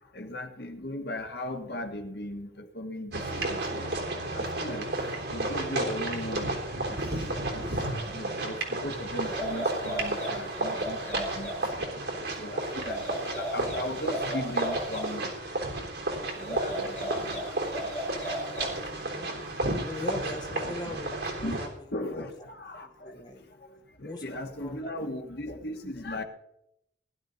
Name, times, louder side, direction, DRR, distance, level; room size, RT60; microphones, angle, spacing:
voice 1, 0.2-2.5 2.7-3.9 4.3-4.9 5.3-6.5 7.5-11.5 12.4-13.0 13.3-15.3 16.5-17.4 18.6-18.7 20.9-21.0 21.4-21.6 21.9-22.9 24.0-26.2, left 1 dB, 55° left, 5 dB, 1.5 m, -37 dB
sound 1, 3.1-21.7, right 2 dB, 65° right, 3.6 m, -32 dB
sound 2, 9.2-11.6 12.7-15.1 16.3-18.9, equal, 5° left, 6.2 m, -36 dB
voice 2, 19.9-21.7 22.1-22.3 23.0-23.4 24.1-24.2 24.6-24.9, left 1 dB, 20° left, 3 dB, 0.9 m, -39 dB
19.0 x 11.5 x 4.0 m, 0.80 s
head